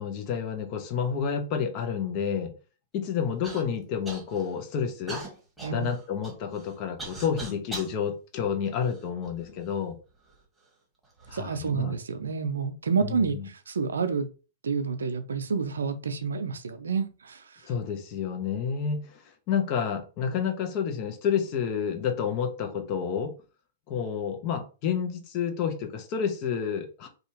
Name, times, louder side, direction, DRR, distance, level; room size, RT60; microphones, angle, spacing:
voice 1, 0.0-2.5 2.9-5.2 5.7-10.0 11.3-11.9 13.0-13.4 17.7-19.2 19.5-23.3 23.9-27.1, left 7 dB, 45° left, 0.7 m, -29 dB
Human voice / Cough, 3.4-3.6 4.0-4.5 5.1-7.9 8.6-9.5 10.2-10.3 11.0-11.4, right 2 dB, 5° right, 1.4 m, -40 dB
voice 2, 11.3-14.3 14.6-17.7, right 5 dB, 85° right, 0.4 m, -29 dB
2.7 x 2.4 x 2.8 m
hypercardioid pair, 110°, 0 cm